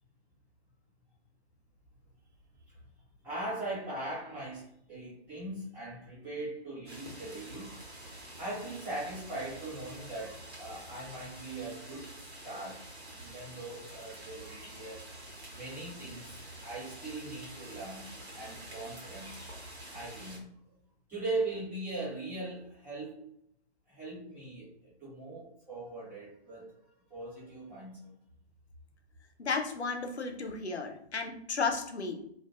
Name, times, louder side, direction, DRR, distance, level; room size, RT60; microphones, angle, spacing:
voice 1, 3.2-7.7 8.3-12.8 13.1-15.1 15.5-19.3 19.9-20.5 21.1-23.2 23.9-28.1, right 2 dB, 5° right, -10 dB, 0.6 m, -40 dB
sound 1, 6.9-20.4, right 1 dB, 75° right, 1.0 m, -48 dB
voice 2, 29.4-32.2, left 4 dB, 80° left, 4 dB, 0.6 m, -33 dB
2.5 x 2.1 x 2.3 m, 0.72 s
figure-of-eight pair, 130°, 33 cm